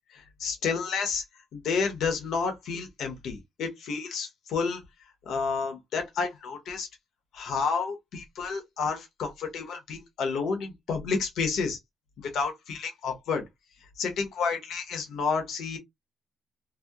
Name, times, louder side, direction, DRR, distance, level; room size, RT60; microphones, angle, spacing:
voice 1, 0.1-1.2 1.5-4.8 5.3-6.9 7.3-11.8 12.2-13.4 14.0-15.8, left 5 dB, 75° left, 0.9 m, -30 dB
2.8 x 2.0 x 2.3 m
cardioid pair, 90°, 0 cm